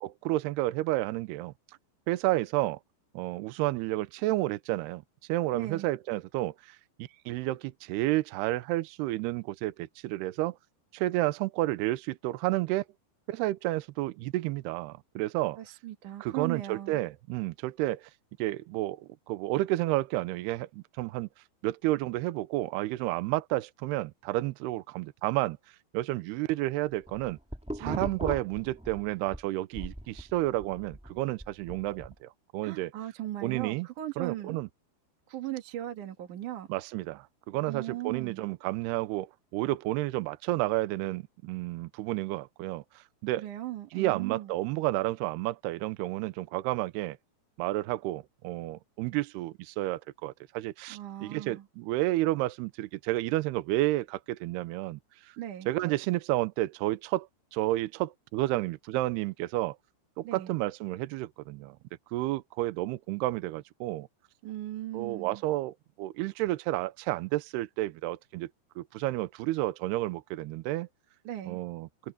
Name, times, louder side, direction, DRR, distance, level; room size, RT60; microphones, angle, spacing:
voice 1, 0.0-1.5 2.1-2.8 3.1-5.0 5.3-10.6 10.9-12.8 13.3-15.6 16.2-18.0 18.4-21.3 21.6-25.6 25.9-27.4 27.8-32.9 33.4-33.9 34.2-34.7 36.7-42.8 43.2-43.4 43.9-47.2 47.6-55.0 55.7-57.3 57.5-59.8 60.2-61.8 62.1-64.1 64.9-68.5 68.8-70.9 71.5-71.9, right 17 dB, 80° right, 2.6 m, -31 dB
voice 2, 5.5-5.9 15.6-17.0 27.8-28.2 32.6-34.6 35.3-36.7 37.7-38.5 43.4-44.5 50.9-51.7 55.4-55.7 60.2-60.5 64.4-65.4 71.2-71.6, right 13 dB, 55° right, 2.7 m, -38 dB
sound 1, 26.9-29.4 29.7-32.1, equal, ahead, 1.4 m, -39 dB
omnidirectional pair, 5.1 m